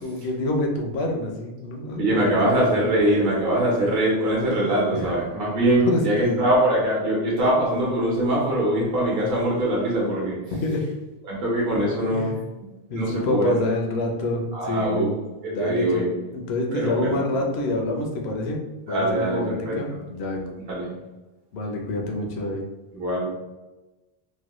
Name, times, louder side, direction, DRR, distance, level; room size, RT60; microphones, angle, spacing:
voice 1, 0.0-2.6 4.9-5.1 5.9-6.5 10.6-10.8 11.7-12.4 12.9-15.1 15.5-16.0 16.3-18.6 18.9-20.5 21.5-22.6, left 2 dB, 80° left, 1 dB, 0.8 m, -27 dB
voice 2, 2.0-10.4 11.2-12.4 12.9-13.6 14.5-15.1 15.4-16.2 16.7-17.2 18.9-20.0 20.7-20.9 22.9-23.3, right 1 dB, 65° right, -5 dB, 0.9 m, -23 dB
3.0 x 2.1 x 2.9 m, 1.1 s
omnidirectional pair, 1.1 m